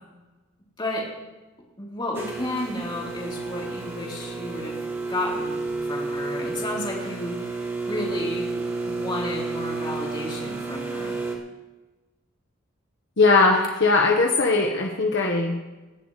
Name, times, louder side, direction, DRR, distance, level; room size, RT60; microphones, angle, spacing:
voice 1, 0.8-1.1 1.8-4.8 5.1-7.5 7.9-8.5 8.9-11.2, left 1 dB, 25° left, -4 dB, 3.7 m, -32 dB
sound 1, 2.1-11.3, right 3 dB, 10° right, 2.2 m, -31 dB
voice 2, 13.2-15.6, left 3 dB, 60° left, 1 dB, 1.4 m, -19 dB
26.0 x 11.0 x 3.3 m, 1.1 s
head